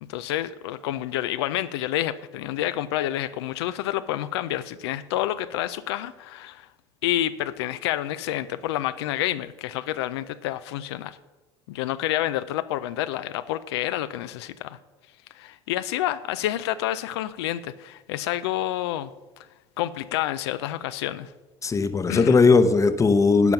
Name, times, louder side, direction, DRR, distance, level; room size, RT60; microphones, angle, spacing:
voice 1, 0.0-6.7 7.0-11.2 11.7-14.8 15.3-19.1 19.4-19.5 19.8-21.3 22.1-22.4, left 13 dB, 80° left, 12 dB, 0.4 m, -29 dB
voice 2, 21.6-23.5, left 4 dB, 25° left, 11 dB, 0.8 m, -18 dB
11.0 x 5.2 x 5.8 m, 1.2 s
hypercardioid pair, 85°, 13 cm